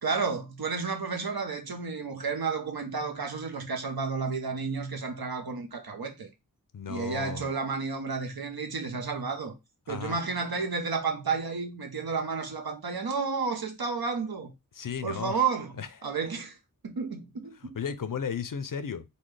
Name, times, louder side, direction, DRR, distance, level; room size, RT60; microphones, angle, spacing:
voice 1, 0.0-6.3 6.9-9.6 9.9-14.5 15.0-15.7 16.0-16.6 16.8-17.8, right 5 dB, 85° right, 0.8 m, -31 dB
voice 2, 6.7-7.4 9.9-10.2 14.7-15.3 15.8-15.9 17.6-19.0, left 7 dB, 65° left, 0.5 m, -34 dB
3.9 x 2.2 x 3.2 m
wide cardioid pair, 50°, 36 cm